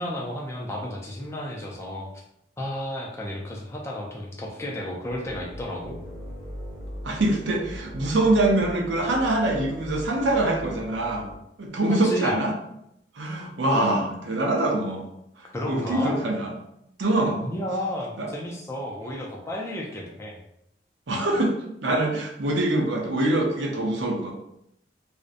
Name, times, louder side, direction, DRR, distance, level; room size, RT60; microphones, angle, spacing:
voice 1, 0.0-2.1 2.6-6.0 12.0-12.3 15.5-16.1 17.4-20.4, left 1 dB, 15° left, -2 dB, 0.3 m, -32 dB
sound 1, 5.1-11.4, equal, 5° right, 0.8 m, -39 dB
voice 2, 7.0-11.3 11.6-12.5 13.2-16.5 17.0-17.4 18.2-18.3 21.1-21.6 21.8-24.3, right 2 dB, 85° right, 0 dB, 0.5 m, -24 dB
2.5 x 2.0 x 2.5 m, 0.78 s
head